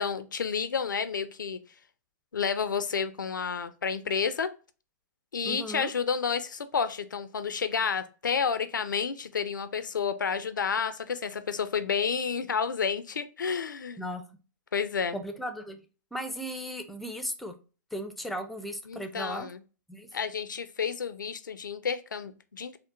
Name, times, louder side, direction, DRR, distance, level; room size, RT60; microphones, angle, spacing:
voice 1, 0.0-1.6 2.3-4.5 5.3-14.1 14.7-15.2 18.9-19.6 20.1-22.8, left 6 dB, 90° left, 0.5 m, -30 dB
voice 2, 5.4-5.9 14.0-14.2 15.1-15.8 16.1-17.6 17.9-19.5 19.9-20.1, equal, ahead, 0.5 m, -36 dB
4.3 x 2.1 x 2.4 m
hypercardioid pair, 125°, 10 cm